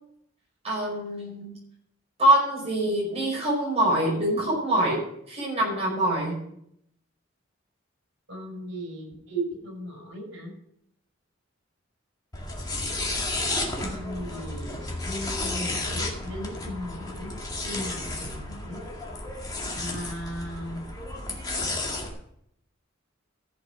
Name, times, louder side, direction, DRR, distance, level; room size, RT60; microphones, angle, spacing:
voice 1, 0.6-1.6 2.2-5.0 5.3-6.4, right 1 dB, 30° right, -4 dB, 5.2 m, -24 dB
voice 2, 8.3-10.5 13.8-17.4 17.6-18.8 19.7-20.8, equal, 70° right, -1 dB, 5.6 m, -36 dB
sound 1, 12.3-22.1, left 2 dB, 20° left, 2.0 m, -32 dB
14.5 x 6.4 x 6.1 m, 0.74 s
head